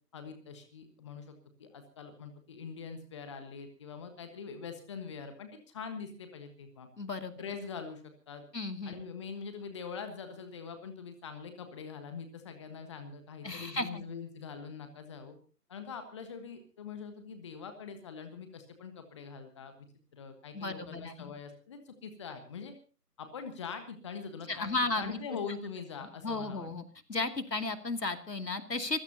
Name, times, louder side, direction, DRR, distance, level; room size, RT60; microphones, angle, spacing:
voice 1, 0.1-6.9 7.4-8.4 8.8-15.3 15.7-19.7 20.1-22.7 23.2-24.7 24.9-26.7, left 6 dB, 20° left, 8 dB, 1.3 m, -43 dB
voice 2, 7.0-7.3 8.5-9.0 13.4-14.0 20.5-21.3 24.5-25.2 26.2-26.8 27.1-29.0, left 3 dB, 80° left, 7 dB, 2.7 m, -34 dB
26.0 x 15.5 x 2.8 m, 0.38 s
figure-of-eight pair, 150°, 48 cm